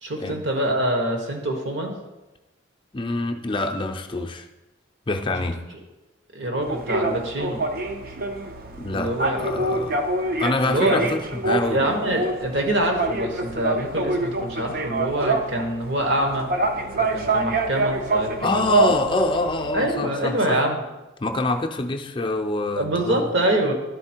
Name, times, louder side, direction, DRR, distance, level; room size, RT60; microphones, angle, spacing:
voice 1, 0.0-1.9 6.3-7.6 8.9-9.6 10.7-11.0 11.7-16.5 17.0-18.9 19.7-20.8 22.8-23.7, right 1 dB, 65° right, 2 dB, 1.3 m, -25 dB
voice 2, 2.9-4.5 5.1-5.6 8.8-9.1 9.4-10.1 10.4-11.8 18.4-20.6 21.2-23.3, left 2 dB, 25° left, 4 dB, 0.5 m, -25 dB
sound 1, 6.6-19.9, right 2 dB, 50° right, 0.6 m, -26 dB
11.0 x 4.2 x 4.4 m, 1.0 s
head